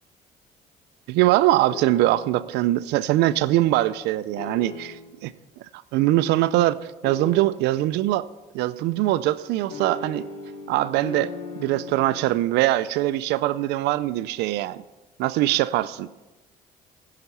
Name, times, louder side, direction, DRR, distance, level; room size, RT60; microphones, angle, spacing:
voice 1, 1.1-5.3 5.9-6.8 7.0-8.3 8.5-10.2 10.7-11.3 11.6-14.8 15.2-15.9, right 15 dB, 85° right, 14 dB, 0.4 m, -22 dB
sound 1, 1.7-2.5 4.4-5.2 7.0-7.9 9.7-12.4, left 2 dB, 50° left, 3.3 m, -37 dB
15.5 x 5.8 x 5.4 m, 1.1 s
cardioid pair, 110°, 17 cm